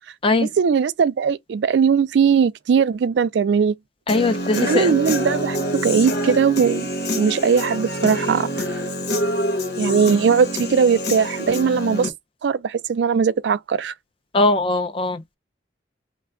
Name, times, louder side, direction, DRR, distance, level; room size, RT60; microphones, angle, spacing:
voice 1, 0.4-3.7 4.5-8.6 9.8-12.1 12.4-13.9, right 6 dB, 65° right, 0.3 m, -19 dB
Human voice / Guitar, 4.1-12.1, left 1 dB, 55° left, 1.0 m, -26 dB
voice 2, 4.1-4.9 14.3-15.2, left 2 dB, 30° left, 0.5 m, -20 dB
3.2 x 2.3 x 3.6 m
head